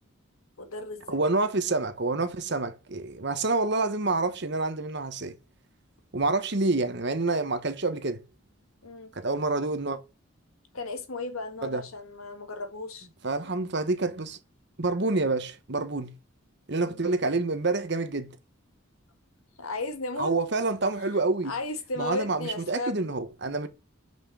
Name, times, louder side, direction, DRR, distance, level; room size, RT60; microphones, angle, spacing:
voice 1, 0.6-1.2 8.8-9.1 10.7-13.1 16.9-17.0 19.6-20.4 21.4-23.1, left 2 dB, 80° left, 1.7 m, -35 dB
voice 2, 1.1-5.4 6.1-8.2 9.1-10.0 11.6-11.8 13.2-14.4 14.8-16.1 16.7-18.4 20.2-21.5 22.0-23.7, right 3 dB, 55° right, 1.2 m, -27 dB
6.0 x 5.9 x 7.0 m
head